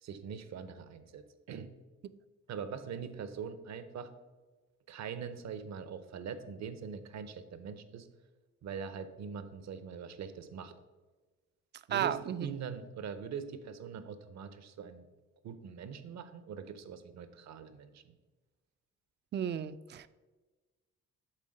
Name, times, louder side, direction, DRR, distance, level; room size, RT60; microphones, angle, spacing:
voice 1, 0.0-1.7 2.5-4.1 4.9-8.1 8.6-10.7 11.9-15.1 15.4-18.1, right 6 dB, 60° right, 0.8 m, -43 dB
voice 2, 11.9-12.5 19.3-20.1, right 9 dB, 35° right, 0.4 m, -33 dB
7.5 x 3.9 x 6.5 m
cardioid pair, 90°, 30 cm